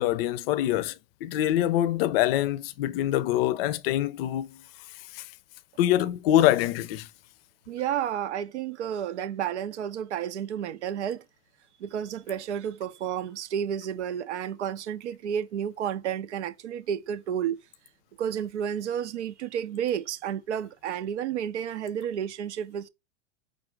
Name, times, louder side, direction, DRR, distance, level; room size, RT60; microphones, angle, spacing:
voice 1, 0.0-4.6 5.1-5.3 5.8-7.1, left 13 dB, 55° left, 0.5 m, -25 dB
voice 2, 7.7-11.2 11.8-17.6 18.2-22.9, right 9 dB, 80° right, 0.5 m, -31 dB
5.1 x 2.1 x 4.3 m
hypercardioid pair, 100°, 34 cm